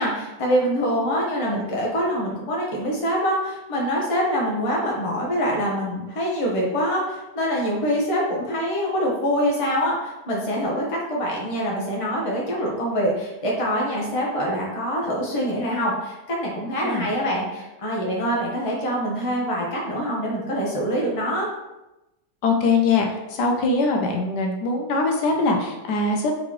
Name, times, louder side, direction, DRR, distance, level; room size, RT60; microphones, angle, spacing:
voice 1, 0.0-21.5, equal, 25° left, -3 dB, 0.8 m, -25 dB
voice 2, 22.4-26.3, left 3 dB, 80° left, 2 dB, 1.3 m, -22 dB
3.8 x 3.8 x 3.1 m, 0.96 s
omnidirectional pair, 1.8 m